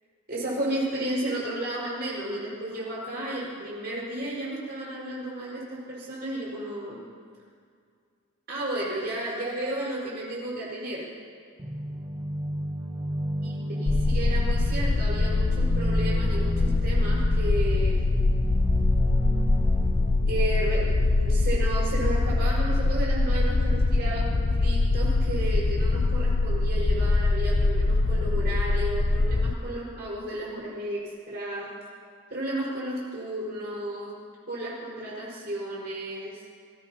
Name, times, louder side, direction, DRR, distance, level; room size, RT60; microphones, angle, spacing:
voice 1, 0.3-7.0 8.5-11.1 13.4-18.0 20.3-31.7 32.3-34.1 34.5-36.4, right 1 dB, 50° right, -6 dB, 4.9 m, -33 dB
sound 1, 11.6-20.7, equal, 20° right, 1.1 m, -33 dB
sound 2, 13.9-29.5, left 2 dB, 40° left, 0.4 m, -23 dB
23.5 x 16.5 x 2.9 m, 2.2 s
head